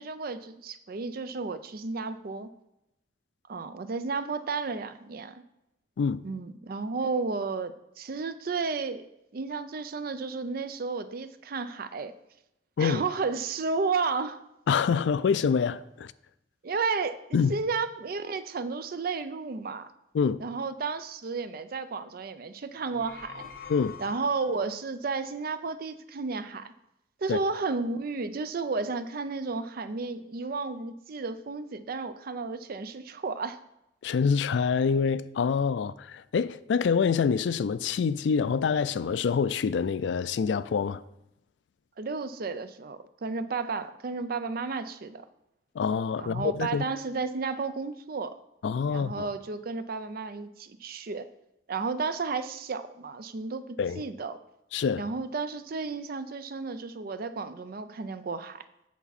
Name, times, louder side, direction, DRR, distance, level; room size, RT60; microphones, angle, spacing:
voice 1, 0.0-2.5 3.5-5.4 6.2-9.1 9.3-12.1 12.8-14.4 16.6-17.2 17.5-19.9 20.4-23.5 24.0-26.7 27.2-33.6 42.0-45.2 46.2-48.4 48.9-51.3 51.7-54.4 55.0-58.6, right 4 dB, 55° right, 0.5 m, -32 dB
voice 2, 14.7-16.1 17.3-17.5 20.1-20.4 23.7-23.9 27.3-27.4 34.0-41.0 45.8-46.8 48.6-49.3 53.8-54.0 54.7-55.0, left 6 dB, 80° left, 0.4 m, -26 dB
sound 1, 22.8-24.7, left 7 dB, 55° left, 0.8 m, -45 dB
8.4 x 7.1 x 4.1 m
head